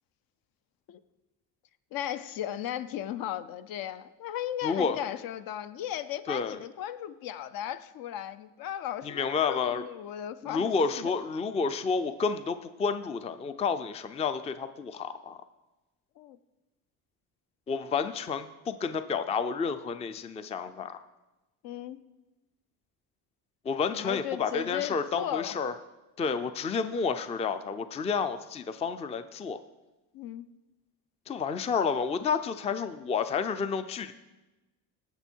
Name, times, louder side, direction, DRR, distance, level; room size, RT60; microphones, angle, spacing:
voice 1, 1.9-11.2 16.2-16.4 21.6-22.0 23.9-25.5 30.1-30.5, left 11 dB, 60° left, 13 dB, 0.6 m, -36 dB
voice 2, 4.6-5.0 6.3-6.6 9.0-9.9 10.4-15.4 17.7-21.0 23.6-25.7 26.2-29.6 31.3-34.1, left 5 dB, 15° left, 11 dB, 0.4 m, -30 dB
17.0 x 6.2 x 4.5 m, 1.1 s
cardioid pair, 125°, 39 cm